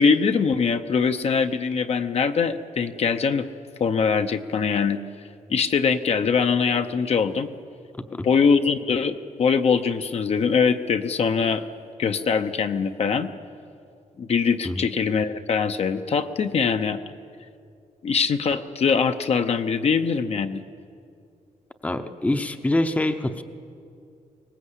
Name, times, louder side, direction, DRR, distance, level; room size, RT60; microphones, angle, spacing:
voice 1, 0.0-3.5 3.8-5.0 5.5-7.5 8.2-11.6 12.0-13.3 14.2-17.0 18.0-20.6, left 5 dB, 50° left, 8 dB, 0.8 m, -22 dB
voice 2, 21.8-23.4, left 1 dB, 10° left, 8 dB, 0.7 m, -25 dB
22.5 x 19.5 x 8.2 m, 2.5 s
wide cardioid pair, 170°, 14 cm